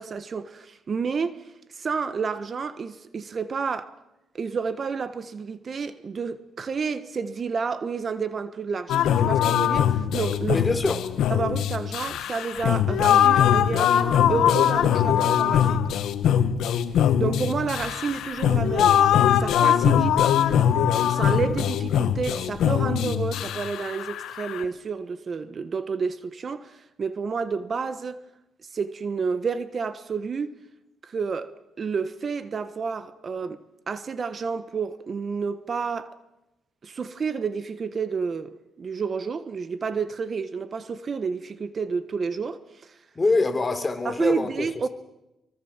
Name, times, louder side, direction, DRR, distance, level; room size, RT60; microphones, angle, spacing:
voice 1, 0.0-3.9 4.3-10.6 11.3-15.8 17.2-19.0 19.4-20.3 21.1-28.2 28.7-30.5 31.0-36.1 36.8-43.0 44.0-44.9, right 5 dB, 45° right, 1.3 m, -30 dB
sound 1, 8.9-24.6, left 9 dB, 80° left, 1.6 m, -22 dB
voice 2, 10.5-11.0 43.1-44.9, left 3 dB, 25° left, 3.4 m, -24 dB
24.0 x 23.5 x 7.4 m
cardioid pair, 90°, 0 cm